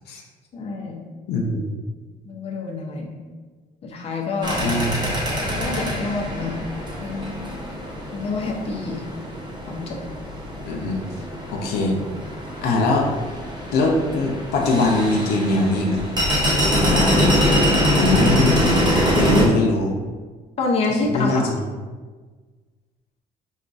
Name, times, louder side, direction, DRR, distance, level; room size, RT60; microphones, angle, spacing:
voice 1, 0.5-1.0 2.3-3.2 3.8-4.6 5.5-6.6 7.0-7.5 8.1-9.0 9.7-10.0 20.6-21.4, left 3 dB, 35° left, -1 dB, 0.7 m, -27 dB
voice 2, 1.3-1.7 4.6-5.0 10.7-11.1 11.5-11.9 12.6-13.1 13.7-16.1 16.7-17.4 17.9-19.9 20.9-21.6, left 2 dB, 75° left, -1 dB, 0.6 m, -22 dB
sound 1, 4.4-19.5, equal, 25° right, 0.8 m, -24 dB
5.1 x 2.3 x 2.5 m, 1.4 s
cardioid pair, 110°, 17 cm